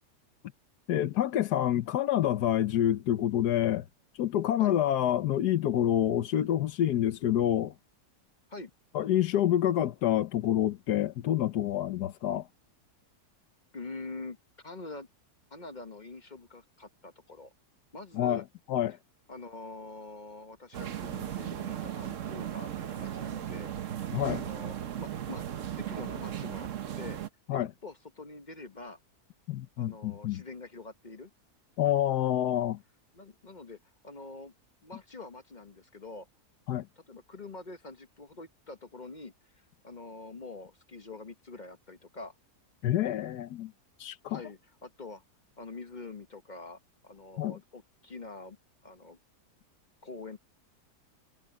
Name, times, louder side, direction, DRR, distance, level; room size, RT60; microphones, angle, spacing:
voice 1, 0.9-3.8 4.1-7.7 8.9-12.5 18.1-19.0 24.1-24.4 27.5-27.7 29.5-30.4 31.8-32.8 36.7-36.9 42.8-43.7 44.0-44.4 47.4-47.6, left 11 dB, 90° left, 1.4 m, -27 dB
voice 2, 13.7-15.1 15.5-17.5 17.9-18.4 19.3-23.7 24.3-25.4 25.8-26.7 27.0-27.2 27.5-29.0 29.8-31.3 32.5-32.7 33.1-33.8 34.0-34.5 34.8-36.3 37.1-42.3 44.3-45.2 45.6-48.6 48.8-49.2 50.0-50.4, left 3 dB, 30° left, 1.1 m, -45 dB
sound 1, 20.7-27.3, right 10 dB, 55° right, 1.2 m, -36 dB
omnidirectional pair, 1.7 m